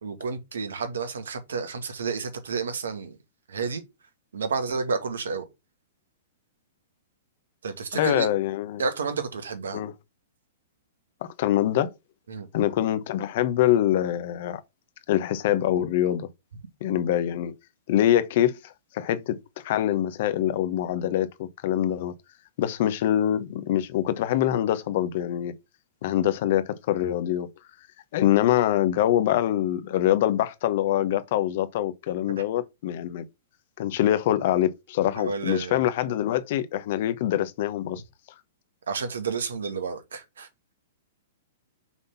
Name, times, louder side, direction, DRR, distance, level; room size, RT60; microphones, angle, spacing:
voice 1, 0.0-3.2 3.5-3.8 4.3-5.5 7.6-8.3 8.8-9.8 12.3-12.5 35.0-35.9 38.9-40.5, right 5 dB, 80° right, 1.7 m, -30 dB
voice 2, 7.9-8.8 9.7-9.9 11.2-11.9 12.5-14.6 15.1-16.3 16.8-17.5 17.9-19.4 19.6-22.1 22.6-25.5 26.0-27.5 28.1-33.2 33.8-38.0, left 12 dB, 55° left, 1.0 m, -24 dB
6.1 x 3.8 x 5.7 m
hypercardioid pair, 120°, 0 cm